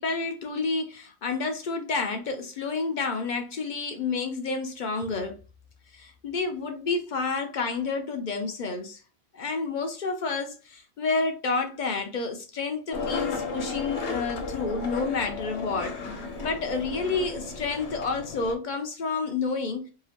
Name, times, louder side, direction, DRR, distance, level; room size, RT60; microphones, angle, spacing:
voice 1, 0.0-5.4 5.9-9.0 9.3-16.0 16.4-19.9, left 4 dB, 55° left, 0.6 m, -29 dB
Skateboard, 12.9-18.6, left 4 dB, 85° left, 1.1 m, -34 dB
2.8 x 2.4 x 2.8 m
omnidirectional pair, 1.1 m